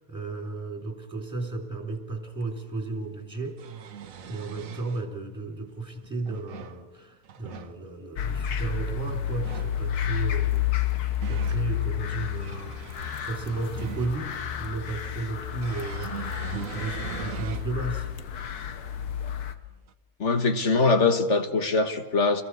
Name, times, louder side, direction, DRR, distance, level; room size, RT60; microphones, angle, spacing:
voice 1, 0.0-3.9 4.2-10.9 11.3-12.7 13.2-18.1, right 3 dB, 5° right, 3.5 m, -34 dB
sound 1, 2.4-2.5 3.3-5.0 6.0-6.8 7.2-7.7 9.3-9.8 10.7-11.7 12.2-14.4 15.6-17.7 18.3-18.4 19.9-20.0, right 8 dB, 65° right, 1.3 m, -41 dB
sound 2, 8.2-19.5, left 9 dB, 85° left, 1.6 m, -30 dB
voice 2, 20.2-22.4, left 3 dB, 50° left, 1.8 m, -22 dB
29.5 x 21.5 x 4.9 m
omnidirectional pair, 1.6 m